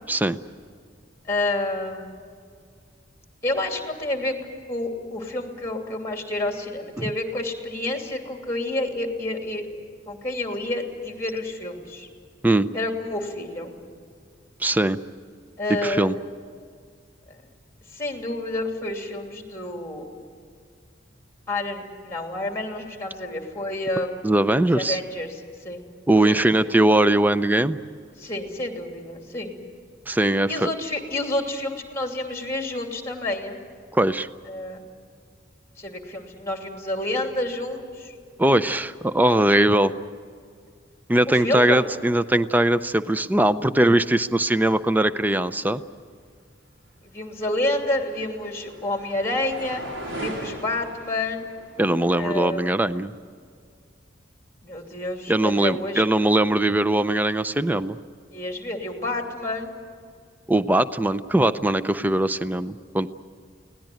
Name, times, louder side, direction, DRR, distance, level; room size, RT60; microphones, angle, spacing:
voice 1, 1.3-2.1 3.4-4.3 4.7-9.6 10.1-12.1 12.7-13.7 15.6-16.1 17.9-20.1 21.5-24.2 24.7-25.8 26.2-26.7 28.2-29.5 30.5-33.6 34.5-34.8 35.8-38.1 41.3-41.8 47.0-49.8 50.2-51.5 52.1-52.7 54.6-56.0 58.3-59.7, left 2 dB, 15° left, 3 dB, 2.8 m, -29 dB
voice 2, 14.6-15.0 15.7-16.1 24.2-25.0 26.1-27.8 30.1-30.7 33.9-34.3 38.4-39.9 41.1-45.8 51.8-53.1 55.3-58.0 60.5-63.1, right 1 dB, 10° right, 13 dB, 0.5 m, -20 dB
sound 1, 47.2-52.5, right 1 dB, 80° right, 4.8 m, -39 dB
24.0 x 17.5 x 9.2 m, 2.1 s
head